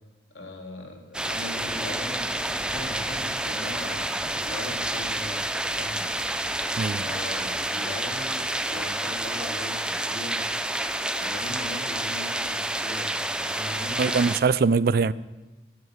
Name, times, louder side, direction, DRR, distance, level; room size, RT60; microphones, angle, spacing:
voice 1, 0.3-5.4 5.7-6.1 6.9-10.5 11.1-14.0, left 1 dB, 80° left, 2 dB, 2.7 m, -40 dB
sound 1, 1.1-14.4, right 1 dB, 5° right, 0.5 m, -29 dB
voice 2, 14.0-15.1, right 5 dB, 55° right, 18 dB, 0.4 m, -22 dB
11.0 x 9.1 x 7.2 m, 1.2 s
head